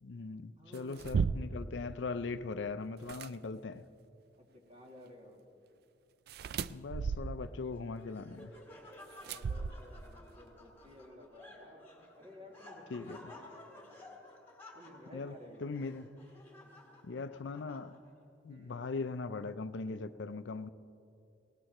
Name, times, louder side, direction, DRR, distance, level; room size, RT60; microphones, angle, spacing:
voice 1, 0.0-3.8 6.7-8.5 12.9-13.2 15.1-15.3 15.6-16.1 17.0-18.0 18.4-20.7, left 4 dB, 90° left, 0.5 m, -40 dB
voice 2, 0.6-1.6 4.4-5.4 9.3-14.0 14.7-15.8 18.5-18.8, left 1 dB, 35° right, 2.4 m, -54 dB
sound 1, 0.7-1.7 3.0-3.3 6.3-7.6 9.2-10.1, right 5 dB, 60° right, 0.3 m, -35 dB
Laughter, 7.7-18.2, left 2 dB, 15° left, 2.2 m, -55 dB
19.5 x 18.5 x 3.0 m
head